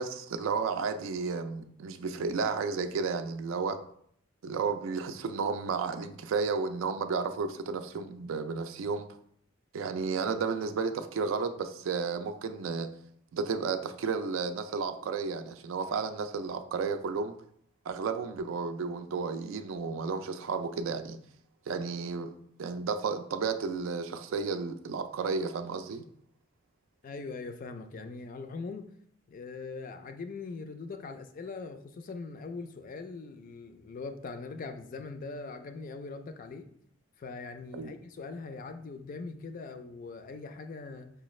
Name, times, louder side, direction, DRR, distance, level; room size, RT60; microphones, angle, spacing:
voice 1, 0.0-3.8 4.4-9.1 9.7-12.9 13.3-17.4 17.9-21.2 21.7-22.3 22.6-26.0 37.7-37.9, right 5 dB, 75° right, 9 dB, 0.3 m, -32 dB
voice 2, 27.0-28.9 29.3-36.7 37.2-41.1, left 4 dB, 45° left, 7 dB, 0.3 m, -41 dB
4.9 x 2.3 x 3.1 m, 0.66 s
head